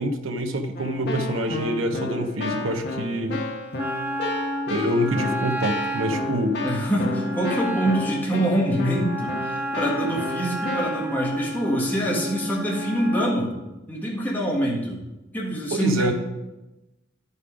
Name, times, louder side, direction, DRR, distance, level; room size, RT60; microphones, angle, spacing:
voice 1, 0.0-3.4 4.7-6.6 15.7-16.1, equal, 75° right, 5 dB, 0.9 m, -26 dB
Keyboard (musical), 0.8-11.1, left 2 dB, 55° left, 1.4 m, -32 dB
Wind instrument woodwind instrument, 3.8-13.4, right 1 dB, 10° right, 0.7 m, -31 dB
voice 2, 6.6-13.5 13.9-15.0 15.3-16.1, right 1 dB, 10° left, -4 dB, 1.6 m, -25 dB
10.0 x 5.5 x 5.0 m, 1.0 s
head